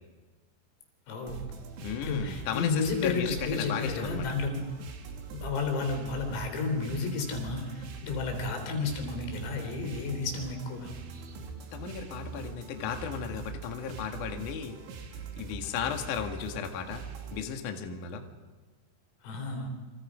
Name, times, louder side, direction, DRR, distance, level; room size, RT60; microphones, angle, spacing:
voice 1, 1.1-1.5 2.0-4.6 5.3-10.9 19.2-19.7, left 4 dB, 85° left, 4 dB, 6.1 m, -32 dB
sound 1, 1.3-17.4, right 5 dB, 70° right, 4.4 m, -43 dB
voice 2, 1.8-4.3 11.7-14.8 15.4-17.0 17.3-18.2, left 7 dB, 55° left, 4 dB, 2.5 m, -35 dB
29.5 x 26.0 x 5.1 m, 1.3 s
omnidirectional pair, 5.8 m